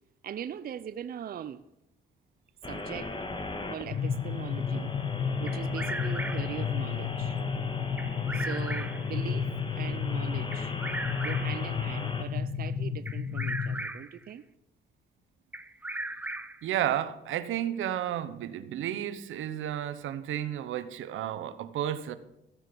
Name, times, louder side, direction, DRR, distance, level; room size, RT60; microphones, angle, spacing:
voice 1, 0.2-1.6 2.7-3.2 3.7-4.9 5.4-7.4 8.3-10.7 11.2-14.4, right 9 dB, 50° right, 0.6 m, -40 dB
sound 1, 2.6-12.2, left 2 dB, 25° left, 1.8 m, -39 dB
sound 2, 3.9-13.8, left 7 dB, 60° left, 1.3 m, -32 dB
Bird vocalization bird call bird song, 5.5-6.6 8.0-9.1 10.5-11.7 13.1-14.2 15.5-16.7, right 2 dB, 10° right, 0.7 m, -38 dB
voice 2, 16.6-22.1, right 11 dB, 80° right, 0.9 m, -32 dB
13.5 x 8.1 x 6.1 m
cardioid pair, 90°, 20 cm